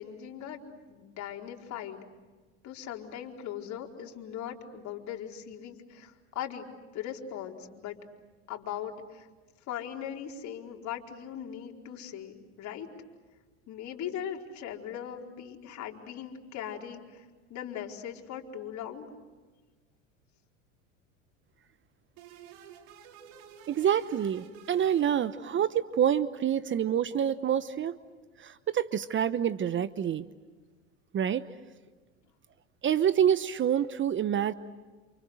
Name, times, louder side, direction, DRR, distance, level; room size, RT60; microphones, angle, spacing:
voice 1, 0.0-2.0 2.6-6.7 6.9-8.0 8.5-9.3 9.7-12.9 13.7-17.2 17.5-19.1, left 9 dB, 50° left, 1 dB, 4.5 m, -39 dB
sound 1, 22.2-25.8, right 8 dB, 65° right, 3.2 m, -51 dB
voice 2, 23.7-28.0 28.4-30.3 31.1-31.5 32.8-34.5, right 9 dB, 30° right, 14 dB, 1.0 m, -27 dB
29.0 x 29.0 x 6.5 m, 1.3 s
hypercardioid pair, 90°, 38 cm